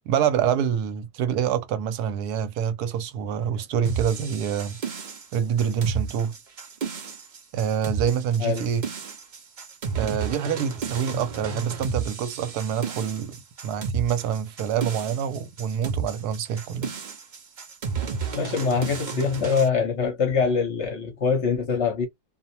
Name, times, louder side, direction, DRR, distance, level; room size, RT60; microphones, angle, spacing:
voice 1, 0.1-4.8 5.3-6.3 7.5-8.8 9.9-13.4 13.6-16.9, right 8 dB, 85° right, 1.1 m, -26 dB
sound 1, 3.8-19.7, right 5 dB, 60° right, 0.4 m, -32 dB
voice 2, 18.3-22.1, left 5 dB, 55° left, 1.0 m, -24 dB
2.6 x 2.0 x 2.7 m
omnidirectional pair, 1.6 m